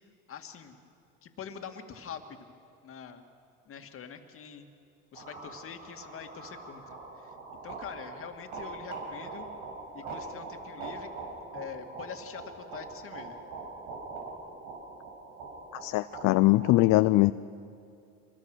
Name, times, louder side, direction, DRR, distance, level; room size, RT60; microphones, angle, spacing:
voice 1, 0.3-0.8 1.2-2.2 2.8-3.2 3.7-4.7 5.1-7.3 7.6-9.5 9.9-11.1 11.5-13.4, left 7 dB, 45° left, 6 dB, 2.2 m, -44 dB
sound 1, 5.1-16.7, right 3 dB, 75° right, 7.0 m, -43 dB
voice 2, 15.8-17.3, left 19 dB, 60° left, 14 dB, 0.6 m, -22 dB
26.0 x 21.0 x 6.3 m, 2.4 s
supercardioid pair, 90°, 32 cm